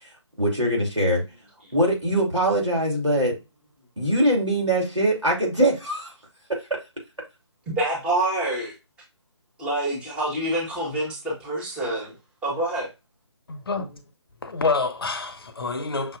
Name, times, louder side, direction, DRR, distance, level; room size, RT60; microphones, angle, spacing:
voice 1, 0.4-1.2 1.7-3.4 4.0-6.1, right 1 dB, 85° right, 2.7 m, -22 dB
voice 2, 7.7-8.7 9.6-12.1 12.4-12.9, right 1 dB, 5° right, 1.2 m, -26 dB
voice 3, 13.5-14.0 14.4-16.2, left 4 dB, 50° left, 0.7 m, -27 dB
5.8 x 2.7 x 2.5 m
figure-of-eight pair, 150°, 15 cm